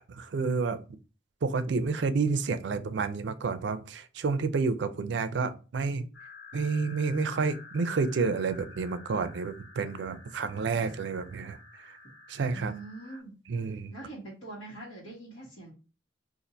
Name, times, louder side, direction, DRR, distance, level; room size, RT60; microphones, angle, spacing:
voice 1, 0.1-0.8 1.4-6.1 6.5-11.6 12.3-12.7 13.5-13.9, right 4 dB, 65° right, 0.4 m, -29 dB
sound 1, 6.1-13.2, left 3 dB, 55° left, 0.8 m, -50 dB
voice 2, 12.5-13.3 13.9-15.7, right 2 dB, 85° left, 1.3 m, -43 dB
2.6 x 2.5 x 4.1 m
head